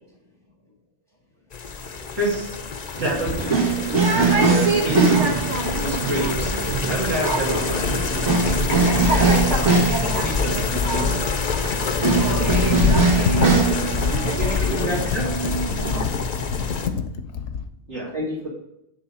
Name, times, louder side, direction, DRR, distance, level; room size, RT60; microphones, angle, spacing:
sound 1, 1.5-16.9, left 5 dB, 45° left, 0.6 m, -26 dB
voice 1, 2.1-2.6 3.0-3.6 4.1-5.4 5.8-6.6 6.8-9.8 10.2-11.5 17.9-18.1, right 1 dB, 70° right, -6 dB, 3.3 m, -29 dB
sound 2, 3.0-16.0, right 4 dB, 85° right, 1.6 m, -22 dB
Computer keyboard, 11.5-17.7, left 5 dB, 75° left, 0.9 m, -28 dB
voice 2, 14.2-15.3 18.1-18.5, equal, 25° right, -4 dB, 1.5 m, -30 dB
10.0 x 3.5 x 4.9 m, 0.84 s
omnidirectional pair, 1.2 m